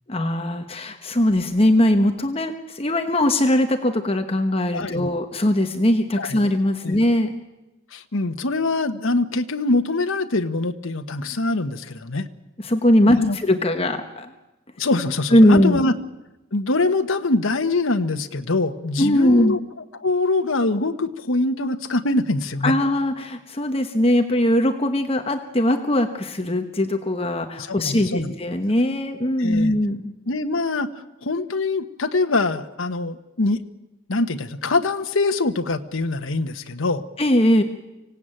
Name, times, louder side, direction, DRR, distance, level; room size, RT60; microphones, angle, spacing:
voice 1, 0.1-7.3 12.6-14.3 15.3-15.8 19.0-19.6 22.6-30.1 37.2-37.6, left 1 dB, 25° left, 6 dB, 1.1 m, -20 dB
voice 2, 4.7-5.1 6.2-6.4 6.8-7.0 7.9-12.3 13.0-13.4 14.8-15.9 16.5-19.6 19.9-22.7 27.6-28.3 29.4-29.8 30.3-30.9 31.2-33.6 34.1-37.0, left 2 dB, 70° left, 7 dB, 1.2 m, -23 dB
25.0 x 17.0 x 9.0 m, 1.0 s
head